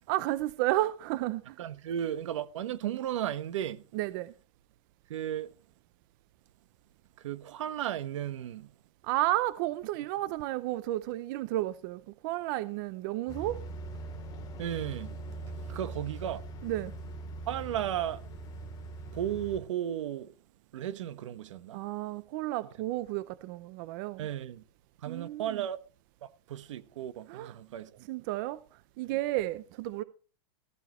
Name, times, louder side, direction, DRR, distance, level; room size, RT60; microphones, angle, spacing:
voice 1, 0.1-1.6 3.9-4.3 9.0-13.6 16.6-16.9 21.7-24.3 25.1-25.6 27.3-27.6 28.1-30.0, right 16 dB, 40° right, 0.6 m, -32 dB
voice 2, 1.6-3.8 5.1-5.5 7.2-8.7 14.6-15.1 15.7-16.4 17.5-18.2 19.1-20.3 20.7-21.8 24.2-24.6 25.0-25.8 26.2-27.9, right 11 dB, 75° right, 1.4 m, -34 dB
sound 1, 13.3-19.6, right 2 dB, 25° left, 2.7 m, -41 dB
14.0 x 14.0 x 3.1 m
supercardioid pair, 160°, 16 cm